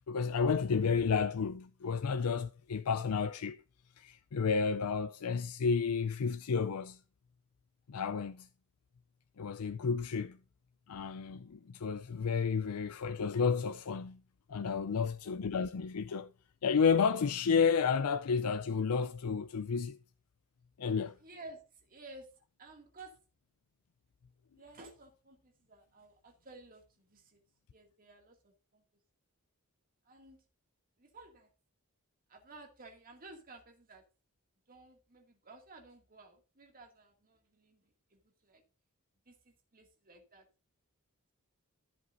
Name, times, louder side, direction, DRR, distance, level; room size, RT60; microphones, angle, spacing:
voice 1, 0.1-3.6 4.0-7.0 7.9-8.5 9.4-10.4 10.9-14.2 14.5-16.3 16.6-20.0 20.8-21.2, left 5 dB, 80° left, 0.5 m, -31 dB
voice 2, 21.2-21.6 21.9-22.3 22.6-23.2 24.5-27.4 27.7-28.8 30.1-30.4 31.0-31.5 32.3-34.0 34.7-37.8 38.1-38.6 39.3-40.5, right 2 dB, 40° right, 2.3 m, -54 dB
14.5 x 7.7 x 2.6 m
head